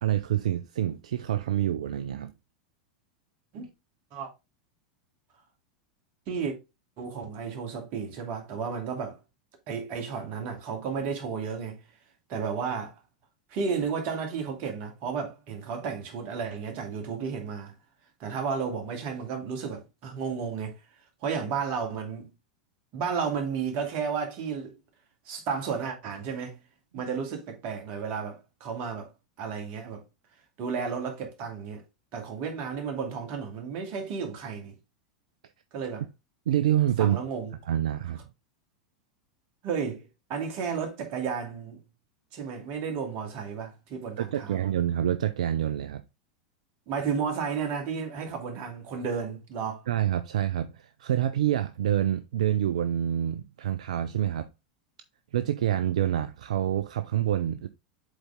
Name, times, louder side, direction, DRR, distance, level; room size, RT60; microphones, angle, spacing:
voice 1, 0.0-2.3 26.9-27.0 36.5-37.2 37.7-38.2 44.2-46.0 49.9-54.5 55.3-57.7, right 11 dB, 75° right, 0.5 m, -27 dB
voice 2, 7.0-9.2 9.7-11.8 12.3-13.0 13.5-17.7 18.2-20.8 21.2-22.3 22.9-24.7 25.3-26.6 26.9-29.1 29.4-30.0 30.6-31.8 32.1-34.7 35.7-36.0 37.0-37.5 39.6-41.8 42.3-44.7 46.9-49.8, right 6 dB, 50° right, 2.5 m, -33 dB
7.9 x 4.1 x 3.6 m
hypercardioid pair, 90°, 4 cm